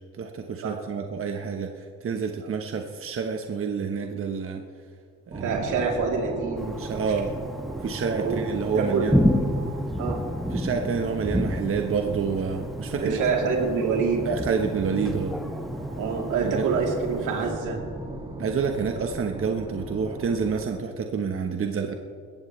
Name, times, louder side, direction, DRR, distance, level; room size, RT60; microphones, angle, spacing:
voice 1, 0.2-4.6 5.3-5.6 6.8-7.3 7.8-9.2 10.5-13.2 14.2-15.4 16.4-16.7 18.4-21.9, right 5 dB, 45° right, 4 dB, 1.2 m, -28 dB
sound 1, 5.3-20.7, right 1 dB, 20° right, 2.3 m, -36 dB
voice 2, 5.4-6.8 8.2-8.4 8.7-9.0 10.0-10.2 13.0-14.2 16.0-17.8, right 5 dB, 85° right, -1 dB, 3.2 m, -26 dB
Thunder, 6.6-17.5, equal, ahead, 1.3 m, -31 dB
21.0 x 16.0 x 3.2 m, 2.1 s
cardioid pair, 90°, 30 cm